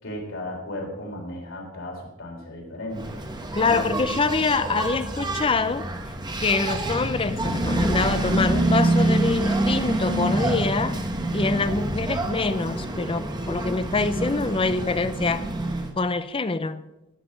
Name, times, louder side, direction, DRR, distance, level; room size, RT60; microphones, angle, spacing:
voice 1, 0.0-3.2 3.7-4.0, left 1 dB, 75° left, 0 dB, 3.5 m, -35 dB
Engine, 2.9-15.9, right 1 dB, 20° right, 1.1 m, -26 dB
voice 2, 3.6-5.9 6.4-11.0 11.3-15.5 16.0-16.8, left 3 dB, 25° left, 13 dB, 0.6 m, -25 dB
14.5 x 6.8 x 5.2 m, 0.95 s
head